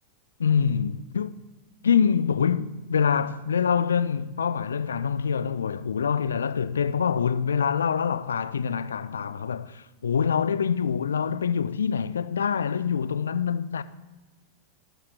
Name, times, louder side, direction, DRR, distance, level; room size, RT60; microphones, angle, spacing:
voice 1, 0.4-1.4 1.8-13.8, left 7 dB, 70° left, 0.6 m, -25 dB
13.0 x 9.4 x 8.2 m
figure-of-eight pair, 90°, 0 cm